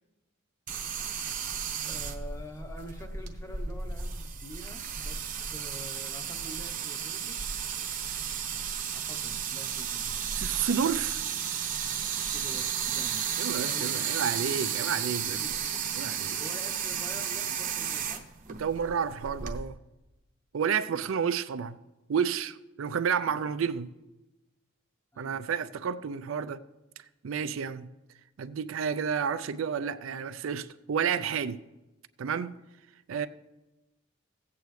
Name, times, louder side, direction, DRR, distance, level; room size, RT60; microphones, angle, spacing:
sound 1, 0.7-19.6, right 8 dB, 40° right, 0.8 m, -33 dB
voice 1, 1.8-7.5 8.9-10.3 12.3-13.2 13.5-13.9 15.3-15.6 16.4-18.2 20.9-21.1 25.1-25.5, equal, 15° left, 0.8 m, -46 dB
voice 2, 10.3-11.2 13.4-15.4 15.9-16.4 18.6-19.8 20.5-21.8 22.1-23.9 25.2-26.6 27.2-27.9 28.4-31.6 32.2-32.5 33.1-33.3, right 7 dB, 75° right, 0.4 m, -30 dB
15.5 x 8.4 x 3.2 m
head